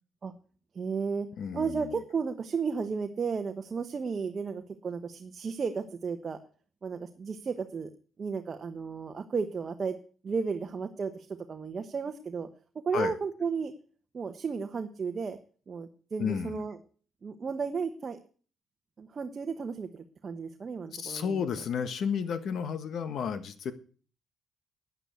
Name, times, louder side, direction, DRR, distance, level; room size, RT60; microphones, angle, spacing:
voice 1, 0.7-1.3 1.5-6.4 6.8-7.9 8.2-10.0 10.2-12.5 12.8-13.7 14.1-15.4 15.7-16.8 17.2-18.2 19.0-21.5, right 5 dB, 40° right, 1.1 m, -33 dB
voice 2, 1.4-2.0 12.9-13.1 16.2-16.7 20.9-23.7, left 7 dB, 65° left, 1.4 m, -32 dB
9.9 x 9.0 x 8.1 m
cardioid pair, 100°, 0 cm